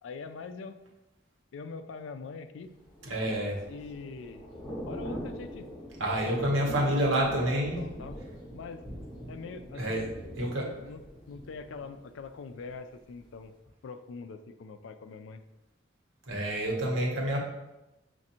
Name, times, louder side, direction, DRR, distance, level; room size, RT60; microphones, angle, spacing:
voice 1, 0.0-0.8 1.5-2.7 3.7-4.5 4.9-5.7 6.2-8.2 8.5-8.8 9.3-10.0 10.5-11.0 11.3-13.5 13.8-15.4, left 4 dB, 80° left, 10 dB, 0.3 m, -43 dB
Thunder / Rain, 2.8-12.7 13.0-13.3, equal, 25° left, 1.3 m, -43 dB
voice 2, 3.0-3.6 6.0-7.8 9.7-10.0 10.3-10.7 16.2-17.4, right 1 dB, 90° right, -1 dB, 1.0 m, -28 dB
6.0 x 2.5 x 2.8 m, 0.97 s
head